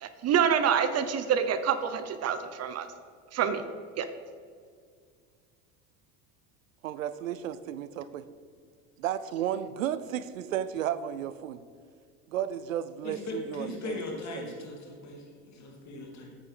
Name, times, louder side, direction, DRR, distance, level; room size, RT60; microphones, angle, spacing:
voice 1, 0.0-2.9 3.3-3.6 4.0-4.1, right 8 dB, 40° right, 11 dB, 0.7 m, -27 dB
voice 2, 6.8-8.2 9.0-11.6 12.3-14.0 14.3-14.5, right 10 dB, 90° right, 15 dB, 0.5 m, -33 dB
voice 3, 13.0-16.3, left 2 dB, 45° left, 0 dB, 2.7 m, -39 dB
8.3 x 8.2 x 4.9 m, 2.1 s
hypercardioid pair, 75°, 39 cm